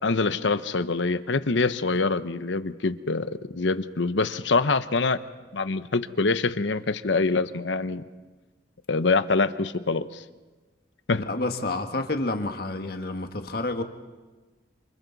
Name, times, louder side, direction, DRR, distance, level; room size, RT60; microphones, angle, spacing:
voice 1, 0.0-5.2 5.5-8.0 8.9-10.2 11.1-11.3, left 3 dB, 75° left, 12 dB, 0.9 m, -25 dB
voice 2, 11.2-13.8, left 2 dB, 55° left, 5 dB, 1.6 m, -29 dB
29.0 x 27.5 x 4.0 m, 1.2 s
head